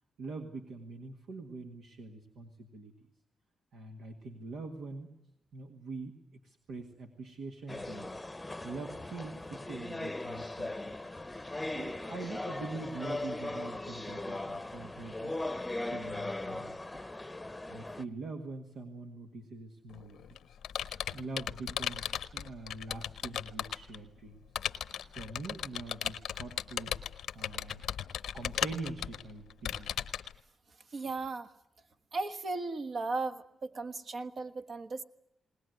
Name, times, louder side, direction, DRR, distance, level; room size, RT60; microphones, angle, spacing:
voice 1, 0.2-2.9 3.7-5.1 5.5-6.2 6.4-8.2 8.6-11.1 11.7-15.3 15.8-17.1 17.7-20.2 21.1-24.4 25.1-27.0 27.3-27.8 28.3-29.9, right 3 dB, 80° right, 4 dB, 1.8 m, -44 dB
sound 1, 7.7-18.0, left 2 dB, 15° left, 0.8 m, -39 dB
Computer keyboard, 19.9-24.0 24.6-30.3, left 9 dB, 85° left, 0.8 m, -36 dB
voice 2, 30.9-31.5 32.1-35.0, right 3 dB, 60° right, 8 dB, 1.5 m, -36 dB
20.0 x 20.0 x 9.3 m, 0.80 s
cardioid pair, 65°, 0 cm